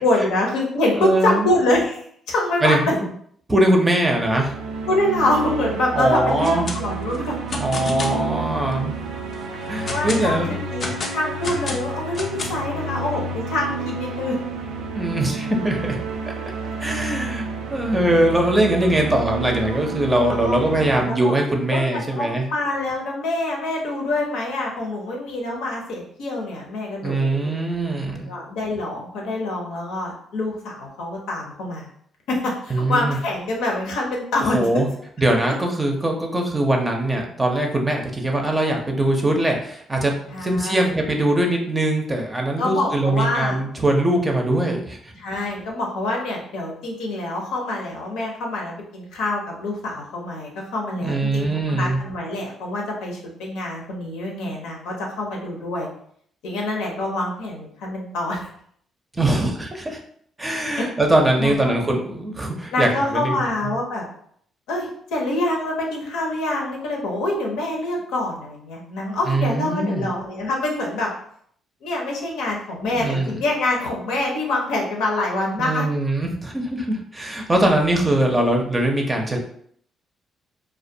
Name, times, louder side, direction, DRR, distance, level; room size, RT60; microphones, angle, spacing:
voice 1, 0.0-2.9 4.9-7.3 9.9-10.4 10.7-14.4 20.3-21.3 21.7-27.5 28.3-31.9 32.3-34.7 40.3-40.9 42.6-43.6 45.2-55.9 56.4-58.5 60.8-60.9 61.4-61.8 62.7-64.1 64.7-71.1 71.8-75.8, left 2 dB, 90° left, -1 dB, 0.6 m, -25 dB
voice 2, 0.9-1.5 2.6-3.1 3.5-4.5 5.9-6.7 7.6-9.0 9.7-10.6 11.7-11.8 14.9-16.0 16.8-17.4 17.7-22.4 27.0-28.3 32.7-33.2 34.5-34.9 35.2-45.1 50.9-52.0 59.1-60.0 60.4-63.3 63.6-63.7 69.3-70.1 72.8-73.3 75.6-79.4, right 1 dB, 20° right, 1 dB, 0.5 m, -21 dB
sound 1, 4.0-21.0, right 4 dB, 85° right, 0.3 m, -30 dB
sound 2, 6.3-6.8 7.1-8.2 8.7-8.8 9.3-10.3 10.8-12.7, left 3 dB, 45° left, 0.4 m, -30 dB
2.2 x 2.1 x 2.6 m, 0.64 s
cardioid pair, 80°, 0 cm